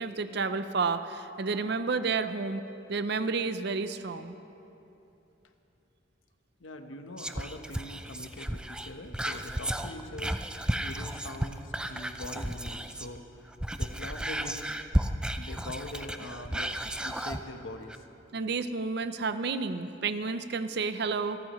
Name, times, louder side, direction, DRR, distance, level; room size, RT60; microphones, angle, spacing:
voice 1, 0.0-2.6 2.9-4.3 18.3-21.4, right 4 dB, 55° right, 11 dB, 0.6 m, -31 dB
voice 2, 6.6-10.4 10.8-13.5 13.8-14.8 15.3-18.0, left 1 dB, 90° left, 6 dB, 1.1 m, -43 dB
Whispering, 7.2-13.2 13.5-17.4 17.9-18.0, right 1 dB, 5° right, 0.4 m, -33 dB
28.0 x 13.0 x 3.1 m, 3.0 s
head